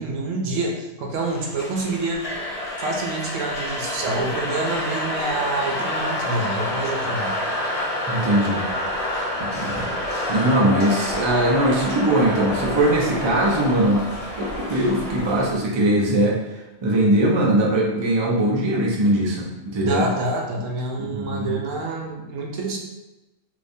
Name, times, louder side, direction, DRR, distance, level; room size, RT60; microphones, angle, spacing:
voice 1, 0.0-2.3 2.8-7.4 19.8-22.8, right 2 dB, 70° right, 0 dB, 1.0 m, -27 dB
sound 1, 1.3-15.5, left 1 dB, 70° left, 0.3 m, -28 dB
voice 2, 8.1-8.6 9.4-9.9 10.3-14.1 14.3-16.4 16.8-20.1 21.0-21.6, right 1 dB, 45° right, -2 dB, 0.3 m, -21 dB
3.6 x 2.9 x 2.6 m, 1.0 s
omnidirectional pair, 1.4 m